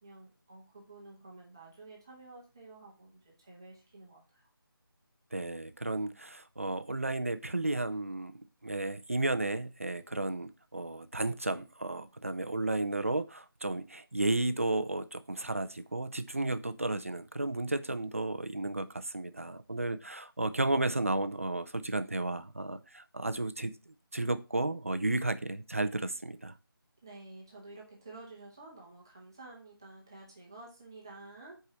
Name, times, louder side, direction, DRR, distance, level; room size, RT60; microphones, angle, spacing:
voice 1, 0.0-4.5 27.0-31.6, right 2 dB, 10° right, 1.0 m, -51 dB
voice 2, 5.3-8.3 8.6-26.5, right 2 dB, 35° right, 0.5 m, -33 dB
6.8 x 4.8 x 5.5 m
figure-of-eight pair, 180°, 12 cm